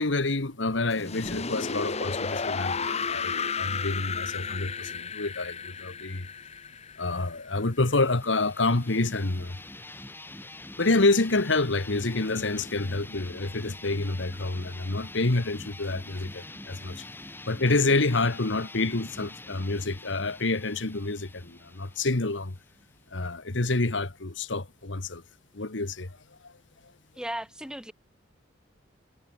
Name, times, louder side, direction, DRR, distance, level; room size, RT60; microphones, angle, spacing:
voice 1, 0.0-6.3 7.0-9.6 10.8-17.1 17.5-22.5 23.1-25.2 25.5-26.1 26.4-26.5, left 2 dB, 80° left, 1.6 m, -28 dB
sound 1, 0.9-7.8, left 5 dB, 35° left, 1.4 m, -33 dB
sound 2, 7.8-23.2, left 2 dB, 10° left, 5.3 m, -45 dB
voice 2, 27.2-27.9, right 1 dB, 5° right, 2.1 m, -35 dB
head